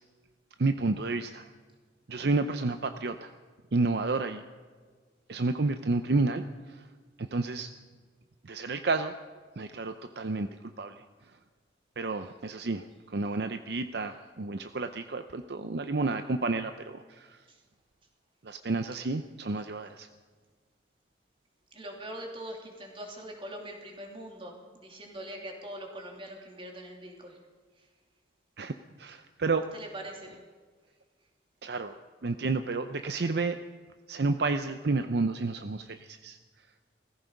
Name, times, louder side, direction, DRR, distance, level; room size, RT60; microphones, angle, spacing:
voice 1, 0.6-1.5 2.1-3.3 3.7-4.4 5.3-6.5 7.2-7.7 8.4-9.1 9.6-10.5 10.8-10.9 12.0-12.8 13.1-17.3 18.4-20.1 28.6-28.7 29.0-29.6 31.6-31.9 32.2-33.6 34.1-36.4, right 3 dB, 60° right, 9 dB, 0.6 m, -30 dB
voice 2, 21.7-27.3 29.7-30.4, right 1 dB, 30° right, 1 dB, 2.8 m, -42 dB
18.0 x 15.0 x 5.3 m, 1.5 s
head